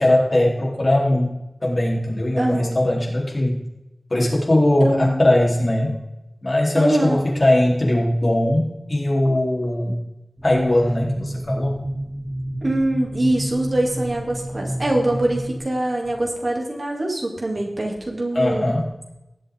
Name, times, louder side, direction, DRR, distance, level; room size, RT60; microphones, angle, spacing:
voice 1, 0.0-1.3 1.6-3.6 4.1-6.0 6.4-10.0 10.4-11.8 18.3-18.9, left 1 dB, 55° left, -2 dB, 3.9 m, -20 dB
voice 2, 2.4-2.8 4.8-5.2 6.7-7.2 12.6-18.7, right 1 dB, 60° right, 0 dB, 3.0 m, -23 dB
sound 1, 10.4-15.6, right 1 dB, 35° right, 3.0 m, -29 dB
18.5 x 8.3 x 3.9 m, 0.94 s
wide cardioid pair, 45°, 0 cm